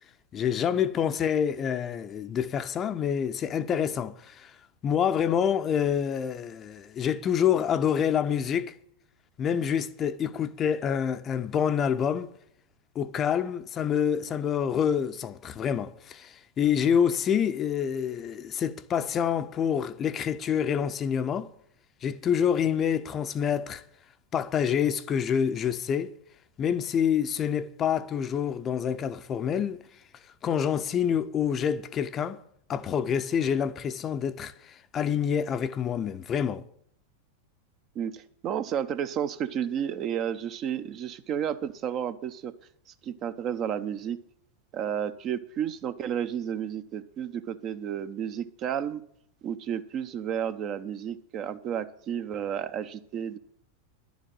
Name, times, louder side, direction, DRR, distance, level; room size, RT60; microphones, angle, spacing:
voice 1, 0.3-4.6 4.8-8.7 9.4-12.3 12.9-21.5 22.0-23.8 24.3-26.2 26.6-29.8 30.4-32.4 32.7-36.6, left 8 dB, 25° left, 0.7 m, -27 dB
voice 2, 37.9-42.5 43.0-44.2 44.7-49.0 49.4-53.4, right 9 dB, 35° right, 0.8 m, -32 dB
10.5 x 7.3 x 8.9 m
figure-of-eight pair, 90°, 0 cm